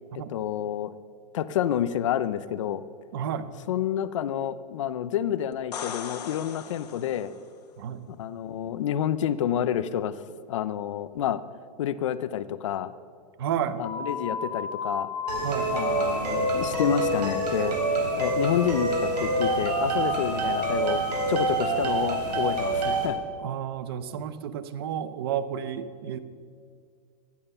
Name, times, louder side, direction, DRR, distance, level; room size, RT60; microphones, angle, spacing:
voice 1, 0.3-0.9 1.3-2.8 3.7-7.3 8.1-10.2 10.5-11.4 11.8-12.9 13.8-15.1 15.7-17.8 18.2-21.0 21.3-23.2, left 10 dB, 45° left, 14 dB, 0.6 m, -28 dB
voice 2, 3.1-3.5 7.8-8.0 13.4-13.8 15.4-15.7 23.4-26.2, right 9 dB, 35° right, 13 dB, 0.7 m, -31 dB
sound 1, 5.5-7.4 11.2-11.3, left 8 dB, 70° left, 1.5 m, -38 dB
sound 2, 13.8-21.8, left 4 dB, 15° left, 1.5 m, -36 dB
sound 3, 15.3-23.1, right 2 dB, 70° right, 3.8 m, -27 dB
15.5 x 11.0 x 5.5 m, 2.2 s
supercardioid pair, 180°, 21 cm